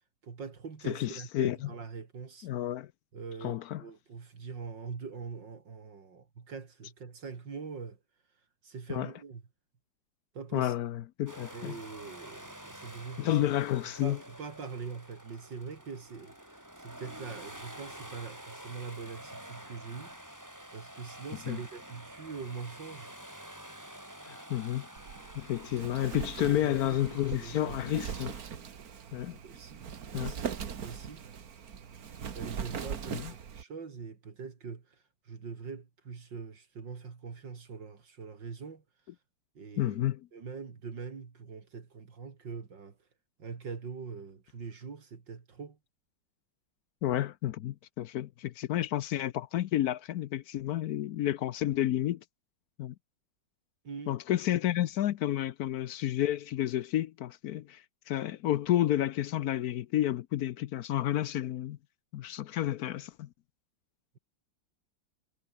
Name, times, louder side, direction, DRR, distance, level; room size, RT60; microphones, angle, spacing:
voice 1, 0.2-2.5 3.1-8.0 8.6-9.4 10.3-10.7 11.5-13.4 14.0-20.1 20.7-23.1 26.4-27.8 29.4-29.9 30.1-30.5 30.8-31.2 32.3-35.0 35.3-38.8 39.5-42.9 43.4-45.8 53.8-54.2, right 5 dB, 75° right, 3.2 m, -43 dB
voice 2, 0.8-1.7 2.4-2.9 3.4-3.8 8.9-9.1 10.5-11.8 13.2-14.2 21.5-21.6 24.2-24.9 25.3-28.3 29.1-29.4 30.1-30.3 33.1-33.3 39.8-40.2 47.0-52.2 52.8-52.9 54.1-57.8 58.1-61.8 62.1-63.3, left 13 dB, 65° left, 1.0 m, -31 dB
sound 1, 11.3-28.4, right 1 dB, 10° right, 4.4 m, -48 dB
Wind, 25.0-33.6, right 7 dB, 55° right, 1.9 m, -40 dB
omnidirectional pair, 2.0 m